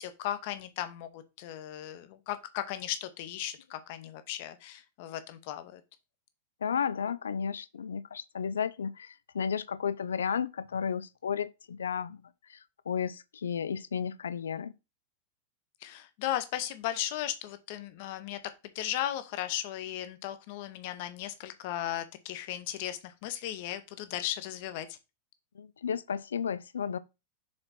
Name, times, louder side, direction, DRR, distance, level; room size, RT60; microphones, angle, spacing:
voice 1, 0.0-5.8 15.8-18.4 18.7-25.0, left 12 dB, 50° left, 1.0 m, -36 dB
voice 2, 6.6-12.2 12.5-12.6 12.9-14.7 25.6-27.0, left 7 dB, 70° left, 0.4 m, -33 dB
6.4 x 4.4 x 4.3 m
figure-of-eight pair, 90°, 0 cm